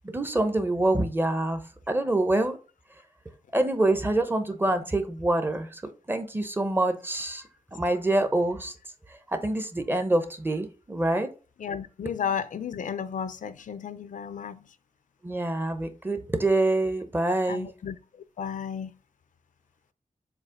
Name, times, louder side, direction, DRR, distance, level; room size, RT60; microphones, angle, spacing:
voice 1, 0.0-1.6 1.9-2.6 3.5-5.8 6.1-7.4 7.7-8.7 9.3-11.3 15.2-17.7, right 2 dB, 15° right, 0.8 m, -26 dB
voice 2, 11.6-14.7 17.5-18.0 18.4-18.9, left 7 dB, 70° left, 0.5 m, -33 dB
7.3 x 2.9 x 4.9 m
wide cardioid pair, 170°, 14 cm